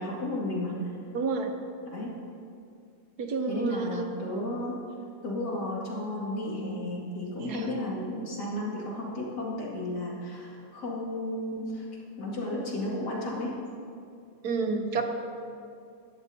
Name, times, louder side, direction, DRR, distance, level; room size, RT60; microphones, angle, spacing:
voice 1, 0.0-1.0 1.8-2.1 3.5-4.8 5.2-11.9 12.2-13.6, left 1 dB, 75° left, -4 dB, 2.8 m, -33 dB
voice 2, 1.1-1.5 3.2-4.0 7.4-7.7 14.4-15.0, right 4 dB, 70° right, 4 dB, 1.4 m, -30 dB
16.5 x 11.5 x 2.8 m, 2.4 s
omnidirectional pair, 1.8 m